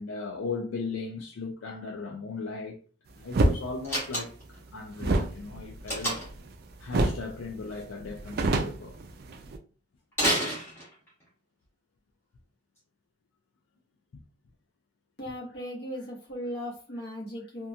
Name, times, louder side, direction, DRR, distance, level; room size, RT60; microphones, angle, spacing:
voice 1, 0.0-2.8 3.1-6.2 6.8-9.0 14.1-14.2, left 4 dB, 80° left, 0.4 m, -37 dB
sound 1, 3.3-3.6 5.0-6.5 6.9-7.3 7.6-7.7 8.0-9.6, right 2 dB, 50° right, 0.3 m, -26 dB
Slam, 3.8-4.6 5.9-6.5 10.1-11.2, equal, 10° left, 1.0 m, -29 dB
voice 2, 15.2-17.7, equal, 50° left, 1.0 m, -37 dB
2.8 x 2.2 x 2.4 m
head